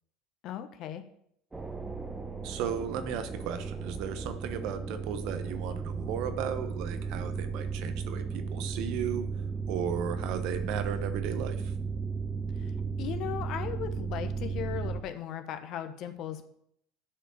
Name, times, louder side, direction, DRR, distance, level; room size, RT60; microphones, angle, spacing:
voice 1, 0.4-1.0 12.6-12.7 13.0-16.5, left 10 dB, 55° left, 8 dB, 1.2 m, -37 dB
sound 1, 1.5-15.0, right 5 dB, 15° right, 1.1 m, -35 dB
voice 2, 2.4-9.3 9.7-11.7, right 8 dB, 65° right, 9 dB, 1.1 m, -35 dB
8.6 x 5.1 x 7.1 m, 0.71 s
hypercardioid pair, 85°, 0 cm